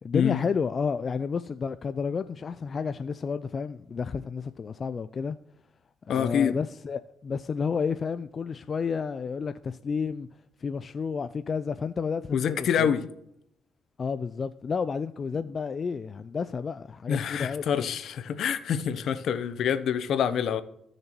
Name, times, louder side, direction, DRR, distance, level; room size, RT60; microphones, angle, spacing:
voice 1, 0.0-5.4 6.1-10.3 10.6-12.9 14.0-17.8, left 5 dB, 40° left, 0.3 m, -31 dB
voice 2, 6.1-6.5 12.3-13.1 17.1-20.6, left 8 dB, 70° left, 0.7 m, -26 dB
15.0 x 6.5 x 3.0 m
cardioid pair, 90°, 0 cm